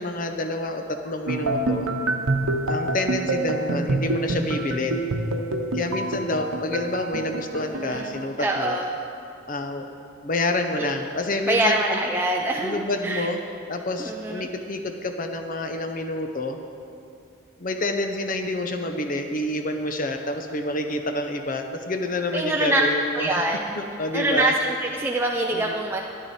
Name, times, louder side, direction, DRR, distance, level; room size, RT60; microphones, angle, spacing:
voice 1, 0.0-1.9 2.7-5.1 5.7-8.8 9.5-9.9 10.2-12.1 12.6-13.4 13.7-16.6 17.6-23.5 23.7-24.5 25.5-25.7, left 2 dB, 40° left, 5 dB, 0.6 m, -28 dB
sound 1, 1.3-8.3, right 2 dB, 90° right, 0.8 m, -27 dB
voice 2, 8.4-8.9 10.8-10.9 11.5-13.3 14.0-14.5 22.3-22.8 23.1-23.6 24.1-26.0, right 2 dB, 10° right, 0 dB, 0.4 m, -24 dB
12.5 x 10.0 x 4.2 m, 2.4 s
head